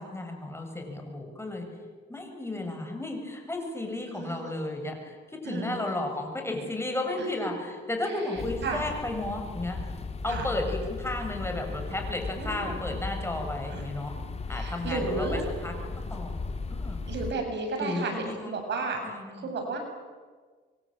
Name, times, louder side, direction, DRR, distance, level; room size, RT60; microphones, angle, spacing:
voice 1, 0.0-1.7 2.1-9.8 10.2-14.1 14.5-15.7 16.1-16.4 16.7-17.0 17.8-18.5 19.0-19.5, left 2 dB, 10° left, 3 dB, 7.0 m, -33 dB
voice 2, 4.1-4.5 5.4-5.8 7.2-7.3 8.0-8.8 10.3-10.5 12.4-12.7 13.7-13.8 14.5-15.4 17.1-19.0 19.3-19.8, right 3 dB, 60° right, 4 dB, 7.8 m, -33 dB
sound 1, 8.4-17.3, left 3 dB, 30° left, 2.6 m, -36 dB
26.5 x 24.5 x 8.9 m, 1.5 s
cardioid pair, 90°, 20 cm